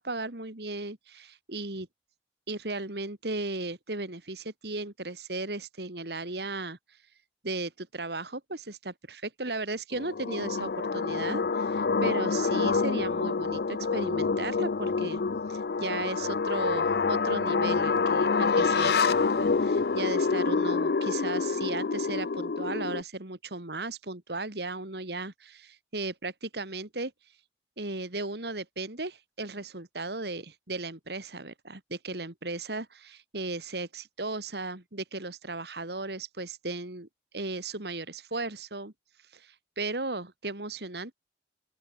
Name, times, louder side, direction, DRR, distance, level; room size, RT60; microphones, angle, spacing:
voice 1, 0.0-1.9 2.5-6.8 7.4-15.2 15.5-27.1 27.8-37.1 37.3-38.9 39.3-41.1, right 2 dB, 65° right, 2.5 m, -36 dB
sound 1, 9.9-23.0, left 4 dB, 60° left, 0.5 m, -27 dB
open air
head